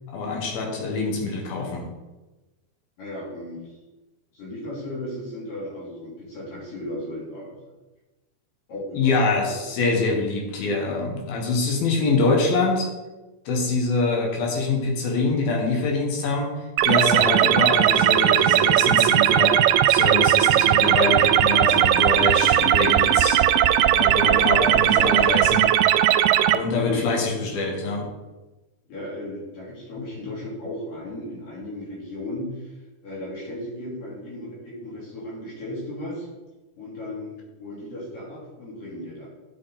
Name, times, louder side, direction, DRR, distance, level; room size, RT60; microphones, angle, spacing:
voice 1, 0.1-1.9 8.9-12.9 13.5-16.5 16.8-19.6 19.9-23.4 23.9-25.7 26.5-28.1, left 3 dB, 90° left, 1 dB, 3.4 m, -24 dB
voice 2, 3.0-3.8 4.3-7.6 8.7-9.6 26.7-27.1 28.9-32.7 33.0-36.3 36.8-39.3, left 1 dB, 70° left, -6 dB, 4.6 m, -35 dB
sound 1, 16.8-26.6, right 11 dB, 80° right, 2.1 m, -18 dB
10.0 x 6.2 x 4.2 m, 1.1 s
omnidirectional pair, 4.1 m